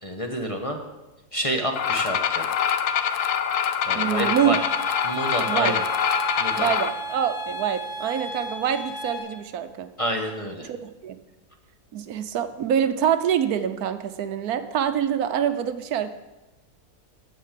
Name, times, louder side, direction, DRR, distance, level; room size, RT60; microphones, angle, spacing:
voice 1, 0.0-0.8 1.3-2.5 3.8-4.6 5.0-5.8 6.4-6.7 10.0-10.7, equal, 25° left, 3 dB, 0.9 m, -28 dB
sound 1, 1.8-6.9, left 8 dB, 90° left, 1.3 m, -25 dB
voice 2, 4.0-4.6 5.5-5.7 6.6-9.9 10.7-11.2 11.9-16.1, right 9 dB, 75° right, 10 dB, 1.2 m, -25 dB
sound 2, 4.2-9.2, right 2 dB, 45° left, 3.6 m, -34 dB
10.0 x 7.4 x 7.5 m, 1.1 s
omnidirectional pair, 1.6 m